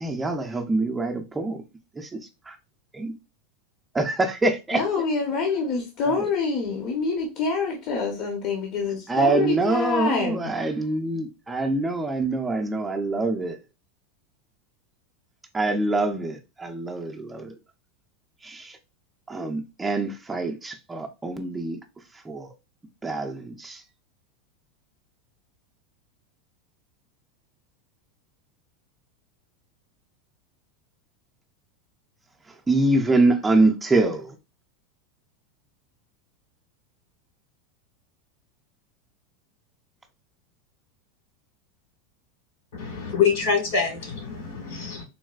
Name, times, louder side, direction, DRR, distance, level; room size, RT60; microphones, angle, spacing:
voice 1, 0.0-1.6 2.0-2.2 2.5-2.6 2.9-3.1 3.9-4.8 6.1-6.3 9.1-13.6 15.5-17.5 18.4-18.8 19.3-21.8 22.3-22.5 23.0-23.8 32.7-34.3, right 2 dB, 10° right, 0.5 m, -25 dB
voice 2, 4.7-10.5, left 4 dB, 50° left, 0.7 m, -26 dB
voice 3, 42.8-45.0, left 6 dB, 75° left, 1.7 m, -25 dB
4.0 x 2.1 x 2.3 m
supercardioid pair, 130°, 0 cm